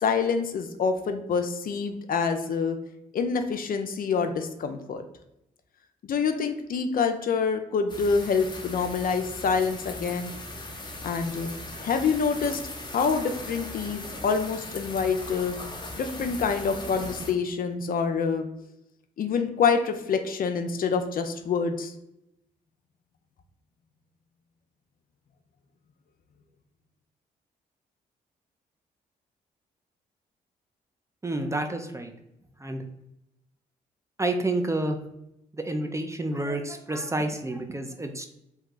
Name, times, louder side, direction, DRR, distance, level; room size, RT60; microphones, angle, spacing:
voice 1, 0.0-2.8 3.1-5.0 6.0-10.3 11.0-11.5 11.8-12.6 12.9-15.6 16.0-18.5 19.2-21.9, left 5 dB, 50° left, 7 dB, 0.5 m, -26 dB
sound 1, 7.9-17.3, left 2 dB, 25° left, 0.8 m, -39 dB
voice 2, 31.2-32.1 32.6-32.8 34.2-35.0 35.5-38.3, right 2 dB, 15° right, 6 dB, 0.4 m, -29 dB
2.8 x 2.2 x 3.8 m, 0.82 s
hypercardioid pair, 50°, 18 cm